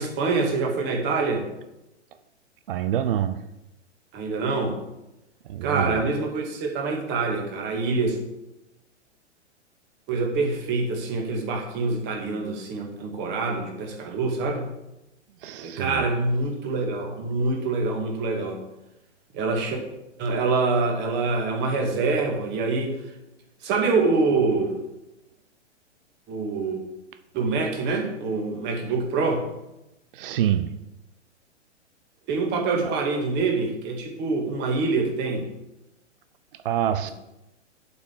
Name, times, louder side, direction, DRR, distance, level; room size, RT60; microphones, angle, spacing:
voice 1, 0.0-1.5 4.1-4.8 5.6-8.2 10.1-14.7 15.6-18.6 19.3-19.8 20.2-23.0 23.6-24.8 26.3-26.8 27.3-29.4 32.3-35.5, right 3 dB, 30° right, 2.2 m, -25 dB
voice 2, 2.7-3.5 5.4-6.0 15.4-16.1 30.1-30.8 32.8-33.0 36.5-37.1, right 10 dB, 50° right, 0.6 m, -27 dB
7.8 x 5.4 x 7.3 m
figure-of-eight pair, 110°, 36 cm